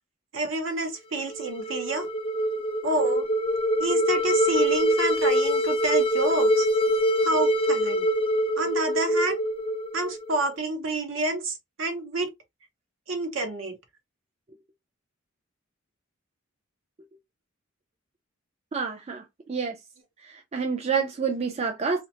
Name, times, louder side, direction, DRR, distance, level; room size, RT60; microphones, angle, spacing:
voice 1, 0.3-2.1 2.8-3.3 3.8-6.7 7.2-8.1 8.6-9.4 9.9-12.3 13.1-13.7, right 2 dB, 65° right, 0.7 m, -28 dB
sound 1, 1.2-10.4, equal, 25° left, 0.5 m, -24 dB
voice 2, 18.7-19.8 20.2-22.1, right 5 dB, 30° right, 0.4 m, -28 dB
2.8 x 2.0 x 2.7 m
head